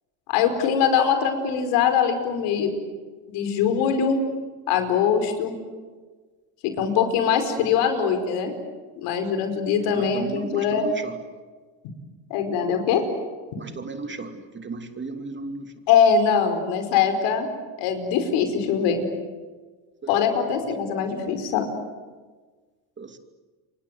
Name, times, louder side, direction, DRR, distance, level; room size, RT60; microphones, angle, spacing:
voice 1, 0.3-2.7 3.3-4.2 4.7-5.5 6.6-8.5 9.0-10.9 12.3-13.0 15.9-17.5 17.8-19.0 20.1-21.7, left 7 dB, 85° left, 7 dB, 5.0 m, -22 dB
voice 2, 9.9-11.2 13.6-15.7 20.0-20.1 23.0-23.2, right 3 dB, 25° right, 6 dB, 2.8 m, -35 dB
28.5 x 24.5 x 8.2 m, 1.4 s
cardioid pair, 110°, 40 cm